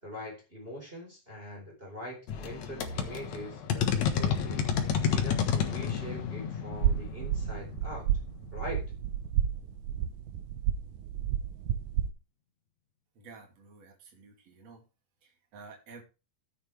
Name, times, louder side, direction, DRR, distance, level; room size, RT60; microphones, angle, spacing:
voice 1, 0.0-4.7 5.1-8.1 8.5-8.8, equal, 15° right, -1 dB, 4.3 m, -42 dB
sound 1, 2.3-8.7, left 7 dB, 60° left, 2.5 m, -31 dB
sound 2, 6.7-12.1, right 10 dB, 70° right, 2.0 m, -31 dB
voice 2, 13.2-14.9 15.2-16.0, right 4 dB, 50° right, 1 dB, 3.6 m, -51 dB
13.0 x 8.6 x 3.4 m, 0.30 s
omnidirectional pair, 4.0 m